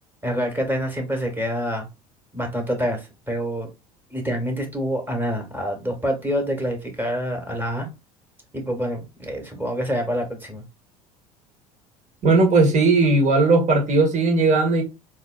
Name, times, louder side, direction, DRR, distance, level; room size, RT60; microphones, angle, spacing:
voice 1, 0.2-1.9 2.3-3.7 4.1-7.9 8.5-10.6, equal, 10° right, 1.3 m, -26 dB
voice 2, 12.2-14.8, right 3 dB, 40° right, 1.3 m, -17 dB
3.9 x 2.4 x 2.3 m
hypercardioid pair, 70°, 19 cm